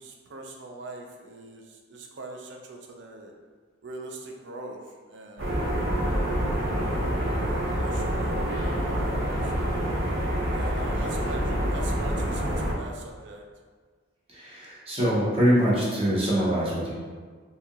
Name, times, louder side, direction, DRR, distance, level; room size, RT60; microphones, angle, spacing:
voice 1, 0.0-3.3 3.8-4.8 5.1-6.1 6.8-9.8 10.5-13.4, right 2 dB, 60° right, 1 dB, 0.4 m, -42 dB
sound 1, 5.4-12.7, equal, 80° right, 0.9 m, -27 dB
voice 2, 14.3-16.9, equal, 30° right, -7 dB, 0.9 m, -24 dB
4.2 x 2.7 x 2.4 m, 1.5 s
head